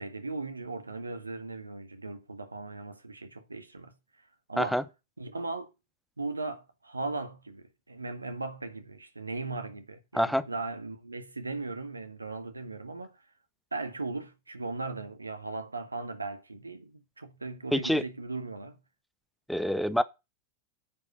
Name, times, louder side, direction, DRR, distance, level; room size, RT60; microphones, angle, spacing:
voice 1, 0.0-3.9 4.5-4.8 5.2-5.7 6.2-13.2 13.7-18.8, right 3 dB, 80° right, 1.7 m, -38 dB
voice 2, 17.7-18.0 19.5-20.0, equal, ahead, 0.9 m, -26 dB
9.3 x 5.2 x 8.0 m
figure-of-eight pair, 90°, 0 cm